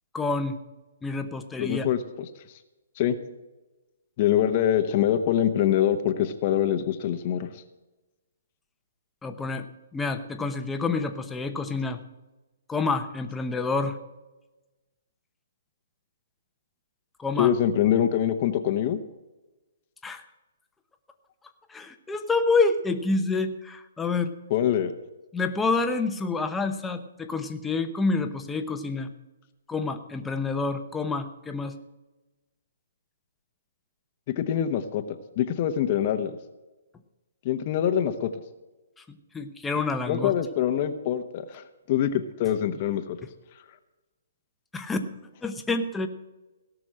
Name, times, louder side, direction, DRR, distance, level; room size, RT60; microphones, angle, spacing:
voice 1, 0.1-0.6 1.0-1.9 9.2-9.7 9.9-12.0 12.7-14.0 17.2-17.5 20.0-20.2 21.7-24.3 25.3-29.1 29.7-31.8 39.0-39.1 39.3-40.3 44.7-45.1 45.4-46.1, left 3 dB, 5° left, 7 dB, 0.9 m, -28 dB
voice 2, 1.6-2.3 3.0-3.2 4.2-7.6 17.4-19.0 24.5-24.9 34.3-35.0 35.4-36.3 37.4-38.3 40.1-43.2, left 10 dB, 35° left, 8 dB, 1.0 m, -24 dB
17.5 x 6.2 x 7.5 m, 1.1 s
hypercardioid pair, 155°, 0 cm